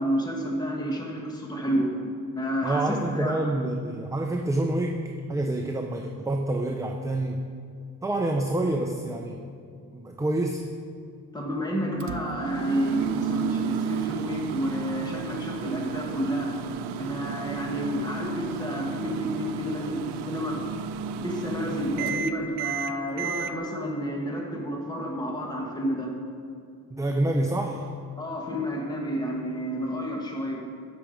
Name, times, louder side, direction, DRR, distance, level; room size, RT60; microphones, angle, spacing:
voice 1, 0.0-2.0 2.3-3.4 11.3-16.5 17.0-20.6 21.2-26.1 28.2-30.6, equal, 10° left, 0 dB, 1.2 m, -30 dB
voice 2, 2.6-5.0 5.3-7.4 8.0-9.4 9.9-10.6 26.9-27.9, right 1 dB, 10° right, 2 dB, 0.4 m, -27 dB
Microwave oven, 12.0-23.5, right 7 dB, 80° right, 0.5 m, -32 dB
15.5 x 6.1 x 5.1 m, 2.4 s
wide cardioid pair, 145°, 39 cm